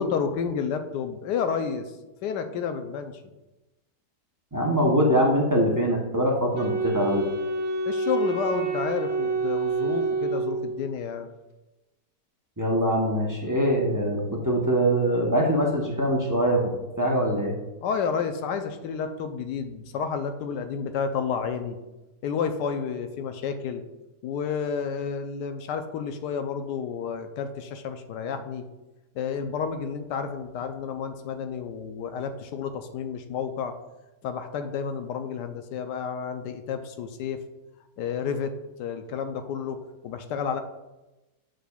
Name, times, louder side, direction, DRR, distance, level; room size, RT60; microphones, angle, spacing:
voice 1, 0.0-1.9 2.2-3.2 7.9-11.3 17.8-21.8 22.2-23.8 24.2-28.6 29.1-33.7 34.2-37.4 38.0-38.5 38.8-39.8 40.0-40.6, left 6 dB, 85° left, 8 dB, 1.2 m, -30 dB
voice 2, 4.5-7.2 12.6-16.6 17.0-17.5, equal, 20° right, -2 dB, 0.5 m, -23 dB
Wind instrument woodwind instrument, 6.5-11.0, right 3 dB, 50° right, 1.0 m, -28 dB
7.6 x 6.5 x 2.3 m, 1.0 s
omnidirectional pair, 1.8 m